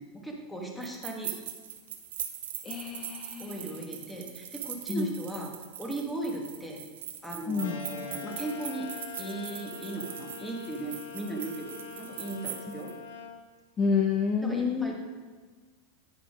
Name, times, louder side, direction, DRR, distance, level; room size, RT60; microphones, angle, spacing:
voice 1, 0.0-1.3 3.4-5.5 5.8-6.8 7.2-8.9 9.2-12.9 14.4-15.0, right 2 dB, 5° left, 0 dB, 1.5 m, -37 dB
sound 1, 0.8-12.9, right 10 dB, 90° right, 0.8 m, -41 dB
voice 2, 2.6-3.8 4.9-5.1 7.5-7.7 12.7-12.8 13.8-14.9, left 5 dB, 30° left, 2 dB, 0.6 m, -29 dB
sound 2, 7.6-13.4, left 5 dB, 80° left, 0.9 m, -43 dB
9.5 x 4.9 x 5.1 m, 1.5 s
supercardioid pair, 130°, 0 cm